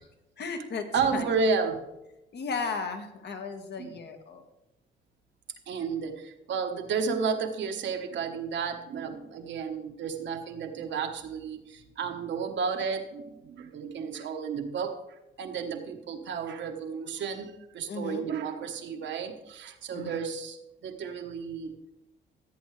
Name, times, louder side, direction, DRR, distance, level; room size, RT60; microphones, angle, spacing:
voice 1, 0.4-1.2 2.3-4.4 17.9-18.2 19.9-20.2, left 4 dB, 60° left, 6 dB, 1.6 m, -35 dB
voice 2, 0.9-1.8 3.8-3.9 5.7-15.0 15.4-21.8, right 5 dB, 65° right, 5 dB, 1.3 m, -32 dB
15.0 x 8.2 x 3.3 m, 0.92 s
cardioid pair, 90°, 20 cm